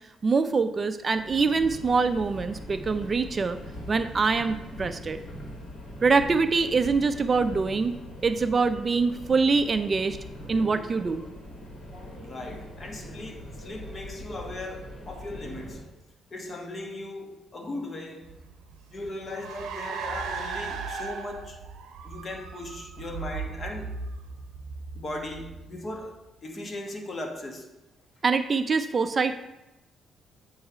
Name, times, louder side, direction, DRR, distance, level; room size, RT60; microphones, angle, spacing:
voice 1, 0.2-3.6 3.9-5.2 6.0-7.9 8.2-10.2 10.5-11.2 28.2-29.5, right 4 dB, 35° right, 0.3 m, -24 dB
Subway metro underground, 1.1-15.9, equal, 55° left, 2.1 m, -42 dB
voice 2, 12.2-15.8 16.3-18.3 18.9-21.6 22.0-24.0 24.9-27.7, left 1 dB, 40° left, 1.1 m, -38 dB
Car, 18.3-26.0, right 5 dB, 85° right, 0.6 m, -37 dB
8.5 x 3.1 x 4.9 m
cardioid pair, 90°, 0 cm